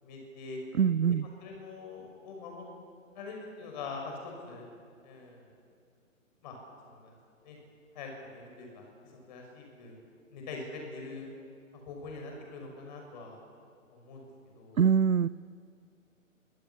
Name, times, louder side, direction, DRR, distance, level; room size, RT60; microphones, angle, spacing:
voice 1, 0.0-0.6 1.4-2.7 3.1-4.6 5.0-5.5 6.4-6.6 6.8-7.1 7.4-7.6 7.9-8.9 9.2-10.0 10.3-11.3 11.7-13.4 13.9-14.2 14.5-14.8, left 3 dB, 30° left, 1 dB, 6.0 m, -43 dB
voice 2, 0.8-1.3 14.8-15.3, right 7 dB, 80° right, 18 dB, 0.6 m, -23 dB
23.0 x 16.5 x 10.0 m, 2.3 s
figure-of-eight pair, 130°, 41 cm